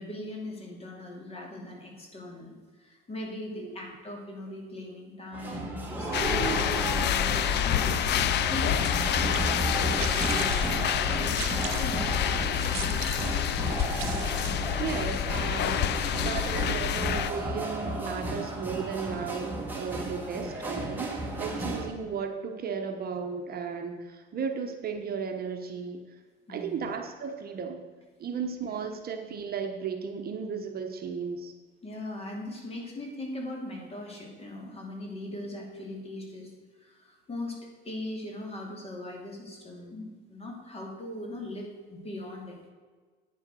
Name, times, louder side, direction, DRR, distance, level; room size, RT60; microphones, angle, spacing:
voice 1, 0.0-8.8 9.1-13.6 21.5-21.7 26.5-26.8 31.8-36.5 36.8-37.6 37.8-42.6, left 1 dB, 30° left, 0 dB, 2.7 m, -40 dB
sound 1, 5.3-21.9, right 2 dB, 10° right, 2.0 m, -33 dB
sound 2, 6.1-17.3, left 10 dB, 55° left, 0.5 m, -28 dB
sound 3, 8.7-14.9, right 11 dB, 85° right, 0.8 m, -41 dB
voice 2, 14.8-26.0 26.5-27.8 28.2-31.5, right 6 dB, 45° right, 4 dB, 1.1 m, -35 dB
9.3 x 7.2 x 6.2 m, 1.4 s
cardioid pair, 125°, 21 cm